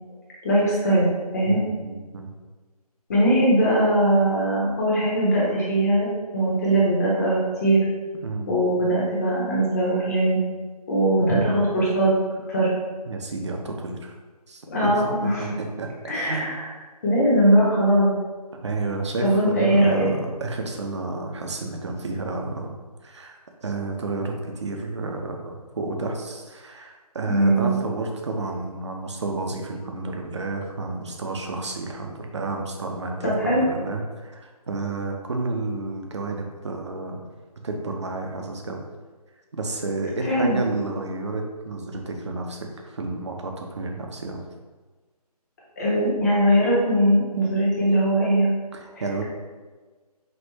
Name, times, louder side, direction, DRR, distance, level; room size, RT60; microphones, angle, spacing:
voice 1, 0.4-1.1 1.3-1.6 3.1-6.1 6.3-7.8 8.5-10.4 10.9-12.1 12.5-12.7 14.7-15.5 16.0-16.7 17.0-18.1 19.2-20.1 27.2-27.8 33.2-33.6 40.2-40.6 45.8-48.5 48.9-49.1, right 1 dB, 25° left, -5 dB, 1.0 m, -20 dB
voice 2, 1.4-2.3 8.2-8.5 10.0-10.1 13.1-14.1 14.5-14.9 15.2-16.5 18.6-22.7 23.0-37.2 37.6-38.8 39.5-44.4 48.7-49.2, right 3 dB, 45° right, 2 dB, 0.6 m, -31 dB
5.3 x 2.5 x 3.1 m, 1.4 s
figure-of-eight pair, 150°, 20 cm